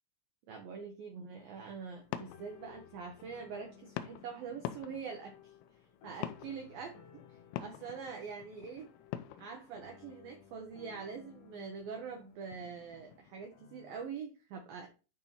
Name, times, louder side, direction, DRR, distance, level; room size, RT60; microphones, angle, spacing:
voice 1, 0.5-5.3 6.0-7.0 7.6-8.9 9.4-14.9, right 5 dB, 80° right, 3 dB, 2.1 m, -44 dB
sound 1, 1.4-13.5, left 12 dB, 85° left, 3.2 m, -48 dB
sound 2, 1.4-14.2, left 7 dB, 70° left, 3.2 m, -59 dB
9.7 x 4.4 x 4.1 m, 0.33 s
omnidirectional pair, 5.8 m